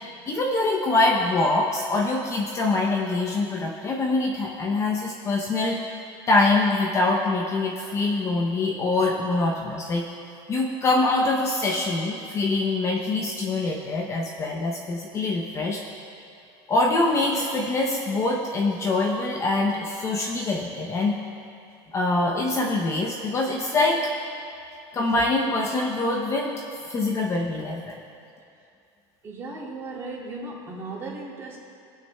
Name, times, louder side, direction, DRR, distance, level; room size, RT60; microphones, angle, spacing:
voice 1, 0.3-5.8 6.3-10.1 10.5-15.8 16.7-21.1 21.9-24.0 24.9-26.5 26.9-28.0, left 2 dB, 25° left, -1 dB, 0.7 m, -24 dB
voice 2, 29.2-31.6, right 3 dB, 25° right, -6 dB, 2.3 m, -36 dB
19.5 x 9.2 x 2.2 m, 2.5 s
cardioid pair, 160°, 12 cm